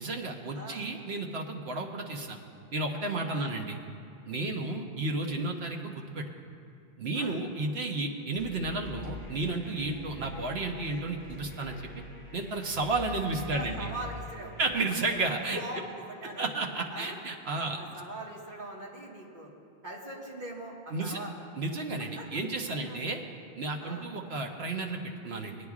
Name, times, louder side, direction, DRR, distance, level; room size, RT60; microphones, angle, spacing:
voice 1, 0.0-2.4 2.7-3.8 4.2-6.3 7.0-11.8 12.3-13.9 14.6-15.6 16.2-17.8 20.9-21.2 21.6-23.2 23.6-25.6, right 3 dB, 85° right, 2 dB, 1.2 m, -32 dB
voice 2, 0.5-0.9 3.3-3.5 7.1-7.4 13.5-14.6 15.3-16.4 16.9-17.2 17.8-19.5 19.8-21.3 22.0-23.1 23.8-24.1, right 1 dB, 50° right, -4 dB, 1.7 m, -42 dB
sound 1, 8.3-15.3, left 3 dB, 70° right, 2.5 m, -45 dB
20.5 x 9.6 x 2.4 m, 2.5 s
omnidirectional pair, 1.0 m